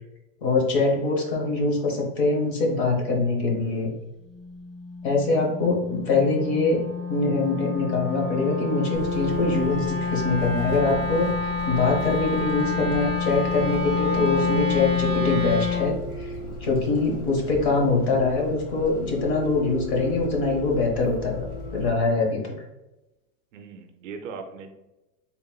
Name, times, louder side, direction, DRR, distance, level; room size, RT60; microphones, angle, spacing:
voice 1, 0.4-3.9 5.0-6.8 7.1-16.3 16.6-21.5 21.7-22.5, left 3 dB, 45° left, 0 dB, 0.9 m, -23 dB
Wind instrument woodwind instrument, 4.3-15.9, left 5 dB, ahead, 1.1 m, -28 dB
Bus, 8.9-21.9, equal, 80° left, 1.2 m, -37 dB
voice 2, 23.5-24.7, right 5 dB, 55° right, 6 dB, 0.5 m, -39 dB
3.9 x 3.5 x 2.2 m, 0.98 s
supercardioid pair, 180°, 46 cm